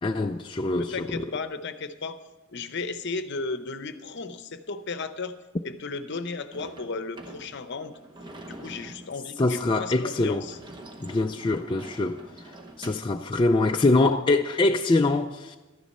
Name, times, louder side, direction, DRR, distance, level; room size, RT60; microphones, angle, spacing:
voice 1, 0.0-1.3 9.4-10.4 11.0-15.6, left 2 dB, 25° left, 0.4 m, -24 dB
voice 2, 0.7-2.2 2.5-5.3 5.6-8.0 8.5-10.6, left 4 dB, 55° left, 0.8 m, -35 dB
Sliding door / Slam, 6.5-13.2, right 1 dB, 20° right, 0.9 m, -45 dB
12.5 x 10.5 x 5.4 m
head